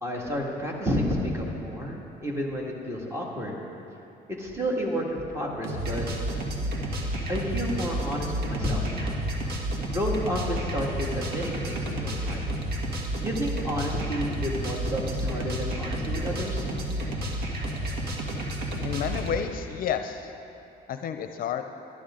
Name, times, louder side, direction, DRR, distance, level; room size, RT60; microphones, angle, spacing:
voice 1, 0.0-3.6 4.4-6.1 7.3-9.2 9.9-12.4 13.2-16.7, equal, 15° right, -2 dB, 2.0 m, -30 dB
sound 1, 5.6-19.4, right 1 dB, 65° right, 1.8 m, -31 dB
voice 2, 18.8-20.3 20.9-21.6, left 8 dB, 55° left, 8 dB, 0.6 m, -30 dB
13.5 x 11.5 x 3.8 m, 2.9 s
cardioid pair, 110°, 17 cm